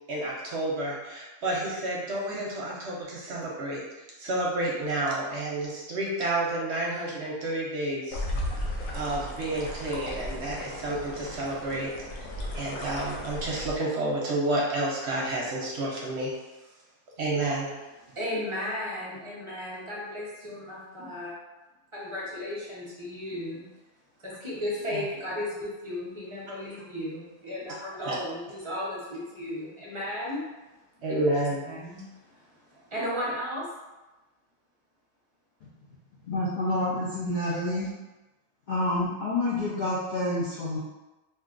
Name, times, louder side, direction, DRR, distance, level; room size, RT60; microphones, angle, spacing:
voice 1, 0.1-11.9 12.2-12.3 12.5-16.3 17.2-17.8 24.9-25.0 28.0-28.2 31.0-31.6, right 1 dB, 65° right, -4 dB, 0.8 m, -30 dB
sound 1, 8.1-13.8, left 1 dB, 85° left, 1.0 m, -35 dB
voice 2, 18.1-21.3 21.9-23.7 24.2-30.4 31.6-32.1 32.7-33.7, left 1 dB, 30° right, -7 dB, 0.6 m, -35 dB
voice 3, 36.3-37.9 38.7-40.8, left 1 dB, 65° left, -6 dB, 0.5 m, -28 dB
2.6 x 2.2 x 3.7 m, 1.1 s
omnidirectional pair, 1.4 m